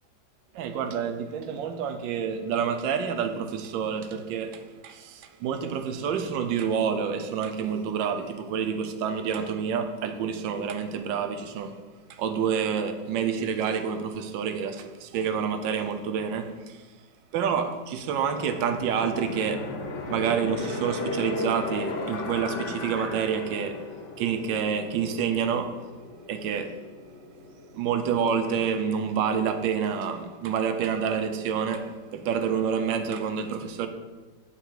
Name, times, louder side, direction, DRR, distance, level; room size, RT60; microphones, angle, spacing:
voice 1, 0.5-11.8 12.1-16.8 17.3-19.7 20.1-23.8 24.2-25.8 26.3-26.8 27.7-33.9, right 7 dB, 90° right, 1.3 m, -28 dB
sound 1, 18.0-28.7, left 3 dB, 55° left, 0.9 m, -36 dB
7.0 x 3.9 x 4.6 m
omnidirectional pair, 1.9 m